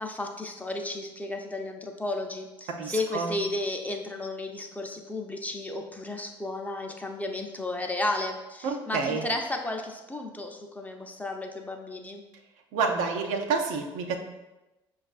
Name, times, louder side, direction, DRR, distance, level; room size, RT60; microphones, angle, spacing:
voice 1, 0.0-12.2, left 2 dB, 10° left, 2 dB, 0.6 m, -33 dB
voice 2, 2.8-3.4 8.6-9.2 12.7-14.2, right 4 dB, 65° right, 4 dB, 0.5 m, -28 dB
5.8 x 2.4 x 2.4 m, 1.0 s
hypercardioid pair, 55°, 13 cm